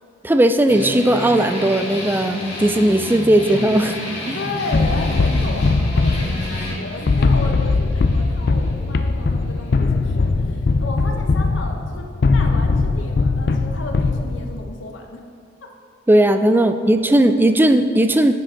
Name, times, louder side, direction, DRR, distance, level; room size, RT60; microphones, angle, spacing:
voice 1, 0.2-4.0 4.3-4.4 16.1-18.4, right 1 dB, 10° right, 8 dB, 0.3 m, -16 dB
sound 1, 0.7-9.7, left 1 dB, 35° left, 2.2 m, -31 dB
voice 2, 4.2-12.1 12.3-15.2 15.6-15.7 16.5-16.6, left 2 dB, 80° left, 2 dB, 0.9 m, -33 dB
sound 2, 4.7-14.7, left 3 dB, 55° left, 0.4 m, -20 dB
10.5 x 7.6 x 3.8 m, 2.2 s
head